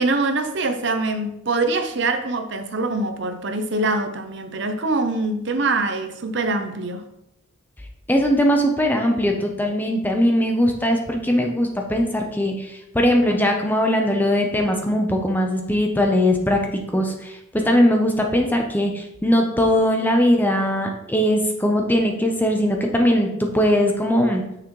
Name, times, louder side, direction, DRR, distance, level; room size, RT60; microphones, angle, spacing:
voice 1, 0.0-7.0, right 2 dB, 55° right, 8 dB, 0.7 m, -24 dB
voice 2, 8.1-24.4, equal, 10° left, 2 dB, 0.8 m, -20 dB
9.5 x 6.4 x 3.2 m, 0.84 s
head